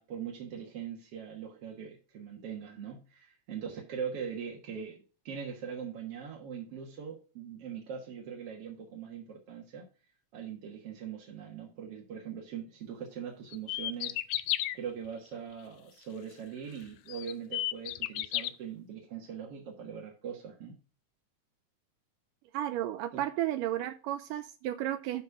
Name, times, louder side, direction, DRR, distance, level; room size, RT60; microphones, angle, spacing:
voice 1, 0.0-9.9 10.3-14.5 14.7-20.8 23.1-23.2, right 7 dB, 55° right, -1 dB, 2.0 m, -41 dB
sound 1, 13.5-14.8 16.4-16.5 17.1-18.5, left 15 dB, 90° left, 1.7 m, -32 dB
voice 2, 22.5-25.2, right 13 dB, 80° right, 11 dB, 2.1 m, -33 dB
11.5 x 4.3 x 4.7 m, 0.36 s
omnidirectional pair, 4.0 m